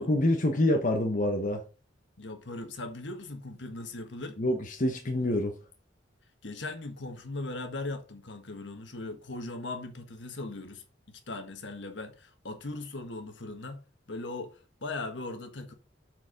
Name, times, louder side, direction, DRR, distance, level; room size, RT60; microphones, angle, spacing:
voice 1, 0.0-1.6 4.4-5.5, left 1 dB, 45° left, 1.0 m, -26 dB
voice 2, 2.2-4.4 6.4-13.8 14.1-15.7, left 2 dB, 70° left, 1.5 m, -39 dB
8.1 x 4.8 x 5.1 m
head